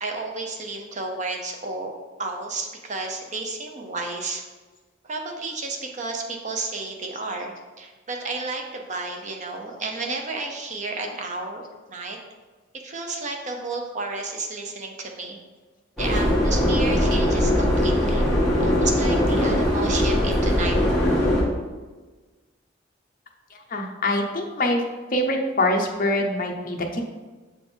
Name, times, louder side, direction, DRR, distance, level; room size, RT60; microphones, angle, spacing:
voice 1, 0.0-1.9 2.2-4.4 5.0-11.6 11.9-12.2 12.7-15.4 16.0-18.3 18.6-21.1, right 3 dB, 40° right, 2 dB, 0.7 m, -32 dB
Subway metro underground, 16.0-21.4, left 1 dB, ahead, 1.5 m, -21 dB
voice 2, 23.5-24.8 25.1-27.0, left 1 dB, 45° left, 2 dB, 0.7 m, -24 dB
6.8 x 3.6 x 4.4 m, 1.3 s
head